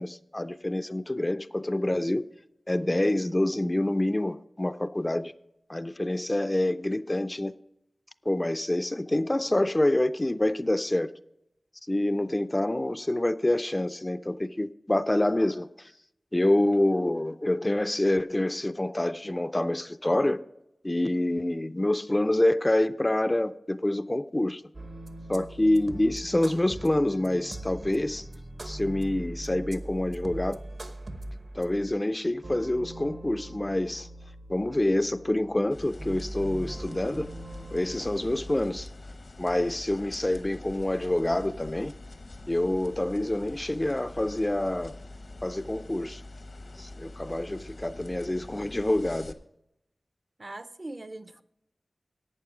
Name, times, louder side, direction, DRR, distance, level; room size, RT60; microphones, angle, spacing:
voice 1, 0.0-2.3 2.7-5.3 5.7-7.5 8.3-11.1 11.9-15.9 16.3-20.4 20.8-24.6 25.3-28.3 28.6-30.6 31.5-34.1 34.5-37.3 37.7-38.9 39.4-41.9 42.5-44.9 45.4-46.2 46.8-49.3, left 1 dB, 20° left, 0.3 m, -27 dB
sound 1, 24.7-38.9, right 1 dB, 60° right, 1.0 m, -42 dB
sound 2, 35.7-49.3, left 2 dB, 70° left, 0.8 m, -45 dB
voice 2, 50.4-51.4, right 2 dB, 40° right, 0.5 m, -40 dB
11.5 x 8.5 x 4.9 m
wide cardioid pair, 75°, 0 cm